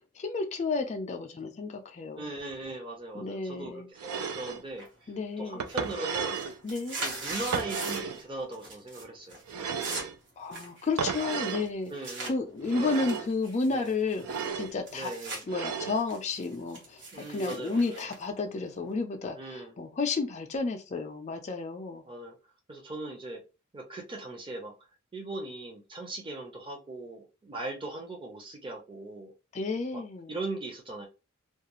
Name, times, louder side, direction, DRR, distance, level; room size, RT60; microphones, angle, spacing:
voice 1, 0.1-2.3 3.1-3.9 5.1-5.7 6.6-7.0 10.4-11.9 12.2-15.1 15.5-22.0 29.5-30.4, left 3 dB, 30° left, 0.4 m, -32 dB
voice 2, 2.2-5.1 5.4-6.4 7.0-9.4 11.9-12.4 12.8-12.9 13.6-13.9 14.9-15.4 17.1-18.1 19.4-19.7 22.1-22.4 22.7-23.4 23.7-24.7 25.1-29.3 29.9-30.0 30.3-31.1, right 2 dB, 25° right, 0.6 m, -39 dB
sound 1, 4.0-4.6 5.6-6.6 7.5-8.2 9.5-10.2 11.0-11.7 12.6-13.3 14.2-14.7 15.5-16.0, right 6 dB, 80° right, 0.4 m, -34 dB
sound 2, 4.8-5.2 5.5-8.2 8.5-9.0 9.3-12.3 12.9-15.4 15.8-19.0, right 2 dB, 55° right, 1.0 m, -40 dB
2.4 x 2.3 x 2.9 m
head